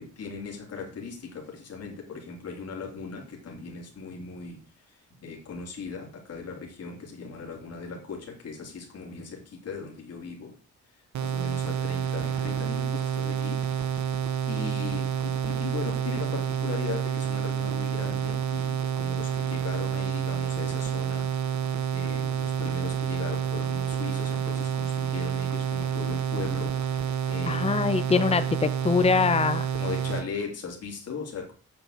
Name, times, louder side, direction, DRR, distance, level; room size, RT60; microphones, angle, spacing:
voice 1, 0.0-10.5 11.2-13.9 14.5-21.3 21.9-27.7 28.2-28.5 29.7-31.5, left 5 dB, 55° left, 0 dB, 3.5 m, -38 dB
sound 1, 11.1-30.3, right 8 dB, 70° right, 1.6 m, -29 dB
voice 2, 27.5-28.4 28.8-29.7, left 5 dB, 20° left, 12 dB, 0.9 m, -23 dB
8.0 x 6.8 x 7.6 m, 0.39 s
cardioid pair, 90°, 30 cm